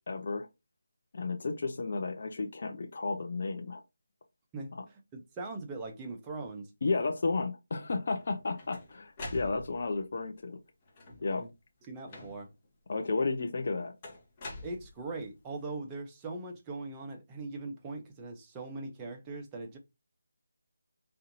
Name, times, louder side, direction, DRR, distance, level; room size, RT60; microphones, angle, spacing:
voice 1, 0.1-0.5 1.1-3.8 4.8-4.9 6.8-10.6 11.2-11.4 12.9-13.9, left 3 dB, 50° left, 0.6 m, -32 dB
voice 2, 4.5-6.7 11.4-11.5 11.9-12.5 14.6-19.8, right 3 dB, 15° right, 0.7 m, -41 dB
sound 1, 8.2-10.0 10.9-11.4 12.1-12.6 14.0-15.3, left 2 dB, 25° left, 1.1 m, -45 dB
4.3 x 2.6 x 2.6 m
figure-of-eight pair, 165°, 0 cm